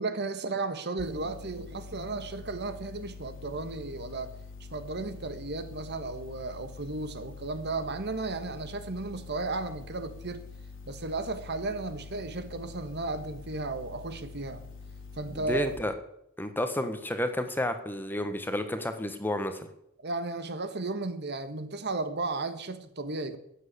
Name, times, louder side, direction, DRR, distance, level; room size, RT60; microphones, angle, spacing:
voice 1, 0.0-4.3 4.7-10.4 10.9-14.6 15.2-15.7 20.0-23.4, right 3 dB, 55° right, 10 dB, 1.5 m, -34 dB
sound 1, 1.0-15.8, left 4 dB, 70° left, 2.5 m, -45 dB
voice 2, 15.5-15.9 16.4-19.7, left 1 dB, 10° left, 8 dB, 1.3 m, -31 dB
13.5 x 9.1 x 8.4 m, 0.79 s
head